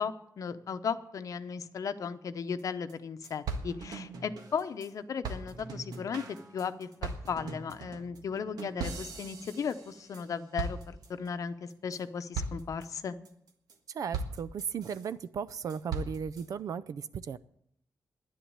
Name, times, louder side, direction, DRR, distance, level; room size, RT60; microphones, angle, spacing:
voice 1, 0.0-6.2 6.5-13.2, left 6 dB, 60° left, 10 dB, 0.8 m, -36 dB
sound 1, 2.6-2.7 2.9-3.0 3.2-4.9 5.2-10.3 10.6-11.3 11.7-12.0 12.3-12.9 13.3-13.7 14.1-15.1 15.5-16.5, right 4 dB, 90° right, 1.6 m, -39 dB
voice 2, 13.9-17.4, right 7 dB, 60° right, 16 dB, 0.5 m, -36 dB
10.5 x 10.0 x 8.7 m, 0.73 s
cardioid pair, 115°, 7 cm